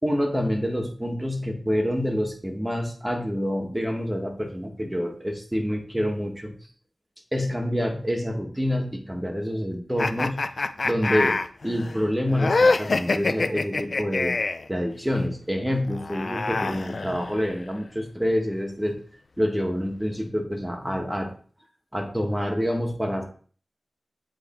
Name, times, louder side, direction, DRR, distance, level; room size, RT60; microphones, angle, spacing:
voice 1, 0.0-6.5 7.3-10.4 10.8-14.4 14.7-19.0 19.4-21.3 21.9-23.2, equal, 10° right, 2 dB, 1.6 m, -27 dB
sound 1, 10.0-14.7 15.9-17.6, left 3 dB, 65° left, 0.4 m, -25 dB
7.8 x 3.5 x 4.5 m, 0.43 s
wide cardioid pair, 60°, 0 cm